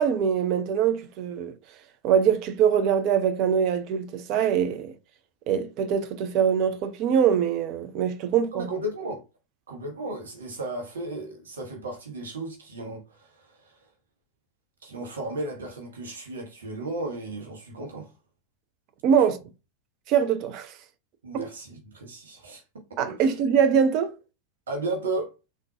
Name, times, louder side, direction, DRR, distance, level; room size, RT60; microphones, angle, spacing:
voice 1, 0.0-1.5 2.0-4.9 5.5-8.7 19.0-19.4 20.1-20.7 21.3-21.5 23.0-24.1, right 8 dB, 40° right, 0.5 m, -23 dB
voice 2, 8.5-9.2 9.7-13.8 14.8-18.1 21.2-22.6 23.0-23.3 24.7-25.3, right 2 dB, 65° right, 1.0 m, -34 dB
3.6 x 2.4 x 2.7 m
figure-of-eight pair, 90°, 0 cm